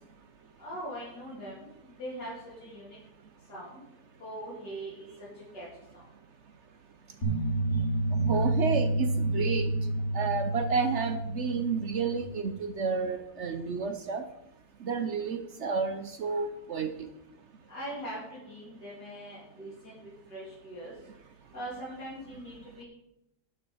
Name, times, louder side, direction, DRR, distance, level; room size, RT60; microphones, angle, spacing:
voice 1, 0.6-2.3 2.6-3.0 3.5-3.8 4.2-5.1 5.5-5.7 5.9-6.0 17.7-20.0 20.3-20.9 21.5-22.8, right 1 dB, 80° left, -9 dB, 3.8 m, -41 dB
sound 1, 7.2-12.2, right 2 dB, 40° left, 2.5 m, -29 dB
voice 2, 8.3-9.7 10.1-14.2 14.8-16.9, right 5 dB, 60° right, 8 dB, 0.8 m, -31 dB
11.0 x 6.5 x 5.1 m, 0.85 s
omnidirectional pair, 1.8 m